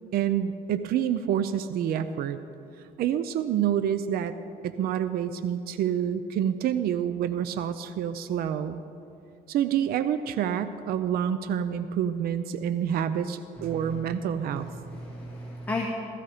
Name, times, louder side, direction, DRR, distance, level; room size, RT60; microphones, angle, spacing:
voice 1, 0.1-2.4 3.0-4.3 4.6-8.8 9.5-14.7, right 9 dB, 65° right, 11 dB, 0.6 m, -27 dB
voice 2, 13.6-14.0 14.5-15.9, left 2 dB, 10° left, -3 dB, 1.9 m, -35 dB
15.5 x 14.5 x 5.0 m, 2.6 s
cardioid pair, 110°, 17 cm